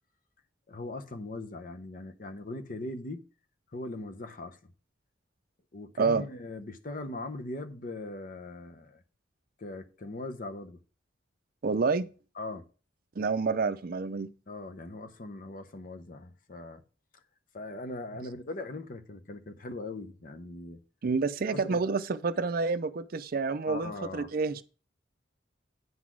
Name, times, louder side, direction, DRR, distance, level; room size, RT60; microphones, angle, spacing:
voice 1, 0.7-3.2 3.7-4.6 5.7-9.0 9.6-10.8 12.4-12.6 14.5-16.8 17.5-20.8 21.5-21.9 23.7-24.3, left 2 dB, 45° left, 0.7 m, -40 dB
voice 2, 11.6-12.1 13.2-14.3 21.0-24.6, right 4 dB, 50° right, 0.5 m, -28 dB
9.4 x 4.0 x 6.1 m
head